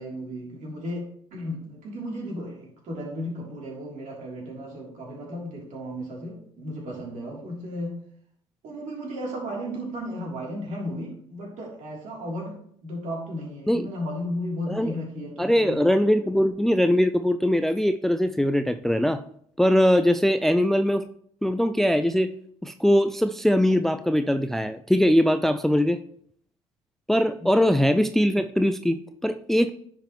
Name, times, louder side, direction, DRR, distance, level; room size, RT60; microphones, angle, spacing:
voice 1, 0.0-7.9 8.6-12.6 12.8-15.9 27.4-27.5, equal, 60° right, -2 dB, 3.1 m, -34 dB
voice 2, 15.4-19.2 19.6-21.0 21.4-22.3 22.6-26.0 27.1-29.7, equal, ahead, 10 dB, 0.4 m, -21 dB
10.0 x 5.2 x 3.1 m, 0.63 s
hypercardioid pair, 60°, 15 cm